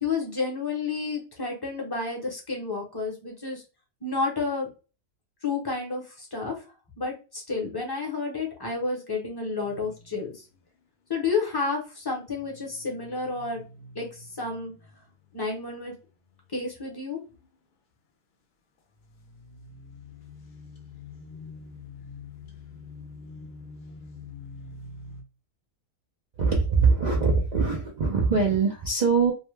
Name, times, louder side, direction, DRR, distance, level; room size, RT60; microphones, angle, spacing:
voice 1, 0.0-3.6 4.0-4.7 5.4-6.5 7.0-10.3 11.1-13.6 13.9-14.1 14.4-14.7 15.3-15.9 16.5-17.2, left 4 dB, 25° left, -1 dB, 0.6 m, -30 dB
sound 1, 9.6-10.6 12.1-16.6 17.0-17.5 18.9-25.2, left 3 dB, 70° left, 0.4 m, -46 dB
voice 2, 26.4-29.3, right 4 dB, 80° right, -2 dB, 0.4 m, -22 dB
2.7 x 2.1 x 3.1 m, 0.32 s
omnidirectional pair, 1.6 m